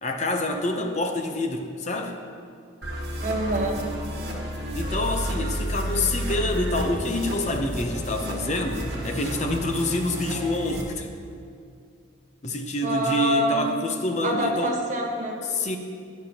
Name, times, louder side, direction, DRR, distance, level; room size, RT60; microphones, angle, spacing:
voice 1, 0.0-2.2 4.7-11.1 12.4-14.8 15.5-15.8, left 1 dB, 35° left, 4 dB, 0.7 m, -27 dB
sound 1, 2.8-10.8, equal, 60° right, 1.8 m, -31 dB
voice 2, 3.2-3.9 12.8-13.8 14.2-15.4, equal, 40° right, 1 dB, 1.3 m, -26 dB
14.0 x 10.5 x 2.9 m, 2.3 s
head